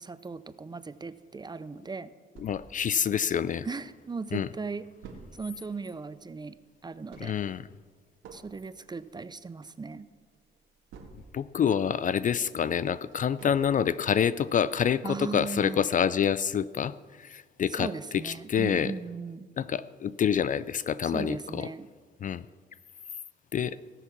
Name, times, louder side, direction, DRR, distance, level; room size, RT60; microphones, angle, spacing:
voice 1, 0.0-2.1 3.6-4.9 5.3-6.6 6.8-7.3 8.3-10.1 15.0-15.9 17.7-19.5 21.1-21.9, right 4 dB, 20° right, 14 dB, 0.5 m, -38 dB
voice 2, 2.4-3.7 4.3-4.5 7.2-7.6 11.3-17.9 18.1-18.9 19.6-21.7 22.2-22.4 23.5-23.8, left 8 dB, 40° left, 17 dB, 0.4 m, -27 dB
sound 1, 2.4-3.9 4.3-4.4 4.6-11.6 12.0-14.1 14.6-14.7 15.1-15.2, right 4 dB, 90° right, 2.1 m, -52 dB
17.5 x 7.2 x 6.0 m, 1.5 s
cardioid pair, 90°, 20 cm